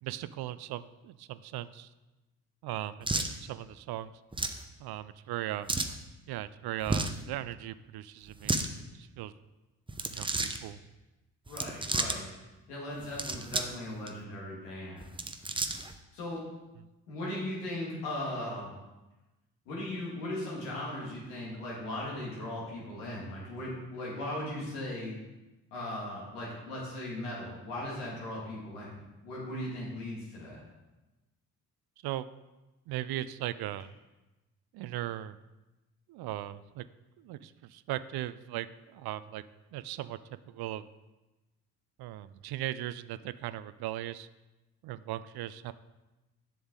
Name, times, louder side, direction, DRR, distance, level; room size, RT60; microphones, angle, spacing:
voice 1, 0.0-1.9 2.6-4.1 4.8-5.7 6.3-8.6 8.9-9.3 10.1-10.8 32.0-32.3 32.9-33.9 34.7-35.4 36.1-36.8 37.2-39.4 39.7-40.2 40.5-40.9 42.0-44.3 44.8-45.7, right 13 dB, 60° right, 15 dB, 0.5 m, -38 dB
sound 1, 3.0-3.3 4.3-4.6 5.7-6.0 6.8-7.2 8.3-8.7 9.9-10.6 11.5-12.2 13.0-13.8 14.1-14.2 15.0-15.9, right 2 dB, 10° right, 0.7 m, -32 dB
voice 2, 11.5-12.3 12.7-15.1 16.1-16.4 17.1-18.7 19.7-25.1 25.7-29.0 29.2-30.6, left 1 dB, 85° left, -4 dB, 2.1 m, -38 dB
7.2 x 7.0 x 3.7 m, 1.1 s
hypercardioid pair, 45°, 43 cm